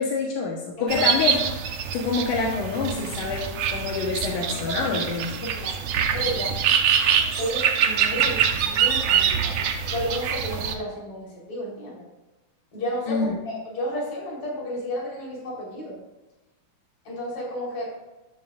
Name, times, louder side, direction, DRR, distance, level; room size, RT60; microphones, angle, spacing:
voice 1, 0.0-1.4 1.9-5.5 13.1-13.4, left 4 dB, 80° left, -1 dB, 2.8 m, -27 dB
sound 1, 0.9-10.7, right 7 dB, 65° right, 2.1 m, -24 dB
voice 2, 4.6-5.0 5.4-5.8 6.1-6.6 7.4-12.0 12.7-16.0 17.0-17.9, equal, 45° left, -3 dB, 4.9 m, -32 dB
13.0 x 13.0 x 2.5 m, 1.1 s
omnidirectional pair, 3.6 m